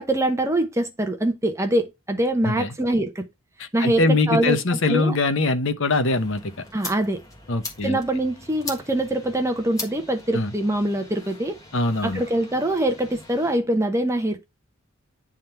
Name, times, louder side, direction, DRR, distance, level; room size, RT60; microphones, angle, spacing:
voice 1, 0.0-3.3 3.7-4.6 4.9-5.2 6.7-7.2 7.8-11.6 12.0-14.4, right 1 dB, 15° right, 0.8 m, -24 dB
voice 2, 3.6-6.5 7.5-8.0 10.3-10.5 11.7-12.2, left 3 dB, 60° left, 0.9 m, -22 dB
sound 1, 6.1-13.6, left 2 dB, 15° left, 1.5 m, -40 dB
9.4 x 3.7 x 4.3 m
head